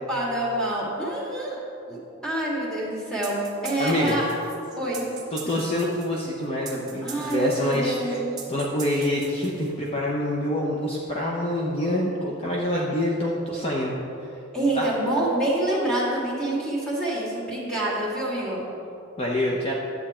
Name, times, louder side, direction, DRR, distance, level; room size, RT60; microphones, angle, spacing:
voice 1, 0.1-1.6 1.9-2.0 2.2-4.3 4.8-5.0 7.0-8.3 14.5-18.6, right 1 dB, 5° left, -6 dB, 2.4 m, -26 dB
sound 1, 3.2-9.9, right 6 dB, 20° right, 1.5 m, -42 dB
voice 2, 3.8-4.2 5.3-8.2 8.5-14.0 14.3-14.4 14.7-14.9 19.2-19.7, left 1 dB, 30° left, -3 dB, 0.9 m, -26 dB
11.0 x 8.3 x 4.4 m, 2.9 s
head